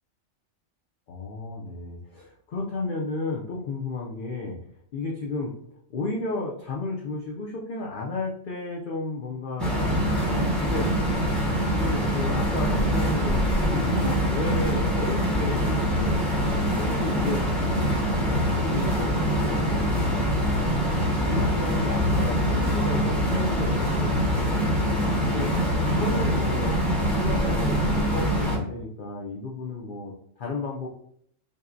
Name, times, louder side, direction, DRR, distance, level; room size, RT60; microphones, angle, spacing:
voice 1, 1.1-4.6 4.9-5.5 5.9-10.9 11.4-20.8 21.2-25.5 25.9-26.8 27.1-30.9, left 3 dB, 60° left, -2 dB, 0.5 m, -33 dB
sound 1, 9.6-28.6, equal, ahead, 0.9 m, -24 dB
5.3 x 2.1 x 2.5 m, 0.69 s
omnidirectional pair, 1.3 m